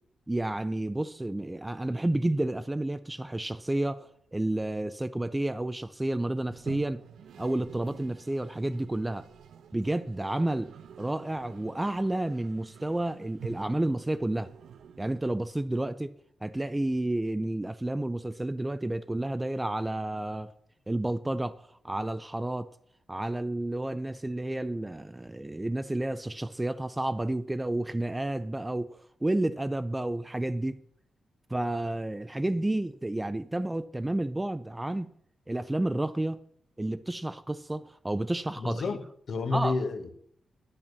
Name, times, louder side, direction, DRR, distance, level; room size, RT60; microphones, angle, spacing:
voice 1, 0.3-7.0 7.4-9.3 9.7-10.7 11.0-14.5 15.0-16.1 16.4-20.5 20.9-21.6 21.8-22.7 23.1-30.8 31.5-35.1 35.5-36.4 36.8-38.8 39.5-39.8, right 1 dB, 10° right, 0.3 m, -30 dB
Toilet flush, 6.4-15.6, right 8 dB, 85° right, 0.7 m, -49 dB
voice 2, 38.6-40.1, left 3 dB, 50° left, 1.1 m, -30 dB
11.0 x 8.5 x 6.8 m
wide cardioid pair, 175°, 0 cm